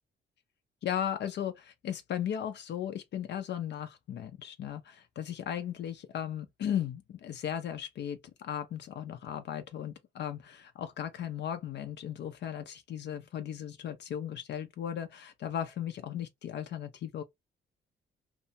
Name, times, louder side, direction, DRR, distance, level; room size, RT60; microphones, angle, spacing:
voice 1, 0.8-17.2, left 9 dB, 60° left, 0.5 m, -36 dB
2.7 x 2.1 x 2.7 m
cardioid pair, 90°, 20 cm